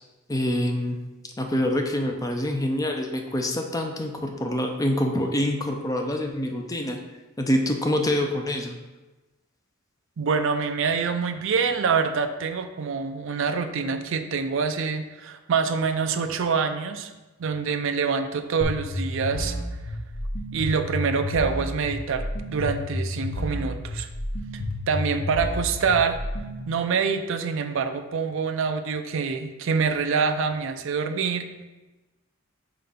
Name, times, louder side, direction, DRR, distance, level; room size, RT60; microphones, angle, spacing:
voice 1, 0.3-1.0 1.4-7.0 7.4-8.8, left 1 dB, 15° left, 3 dB, 0.5 m, -26 dB
voice 2, 10.2-17.1 17.4-19.6 20.5-24.1 24.9-26.2 26.7-31.6, right 5 dB, 65° right, 8 dB, 0.4 m, -26 dB
sound 1, 18.6-26.6, left 1 dB, 75° left, 1.0 m, -31 dB
4.7 x 3.8 x 5.5 m, 1.1 s
head